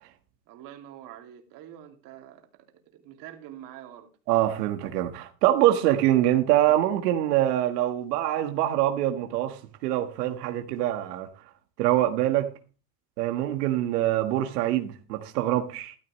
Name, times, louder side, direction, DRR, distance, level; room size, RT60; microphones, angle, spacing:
voice 1, 0.5-4.1, right 11 dB, 45° right, 2.6 m, -46 dB
voice 2, 4.3-11.3 11.8-12.5 13.2-16.0, right 13 dB, 85° right, 1.6 m, -24 dB
13.5 x 12.0 x 3.1 m
supercardioid pair, 155°, 46 cm